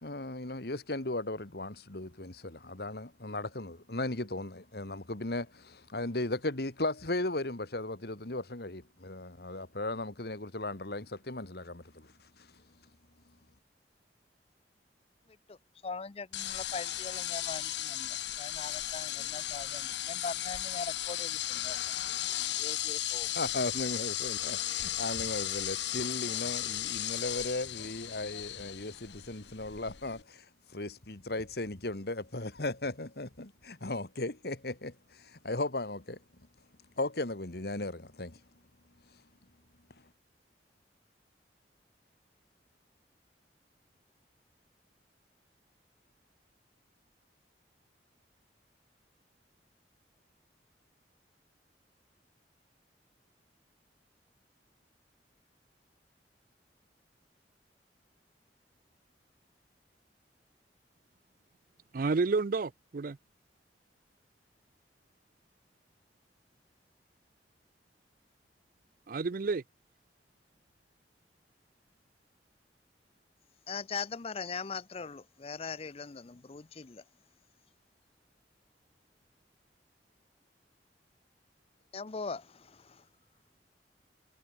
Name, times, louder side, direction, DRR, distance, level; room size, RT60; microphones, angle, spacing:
voice 1, 0.0-12.1 12.4-12.5 23.4-30.5 30.7-36.2 37.0-38.4, left 2 dB, 60° left, 2.1 m, -36 dB
voice 2, 15.8-21.8 22.6-23.3 73.7-77.0 81.9-83.0, left 4 dB, 35° left, 0.6 m, -41 dB
sound 1, 16.3-30.2, left 13 dB, 90° left, 1.1 m, -35 dB
voice 3, 61.9-63.2 69.1-69.6, right 4 dB, 50° right, 0.5 m, -30 dB
head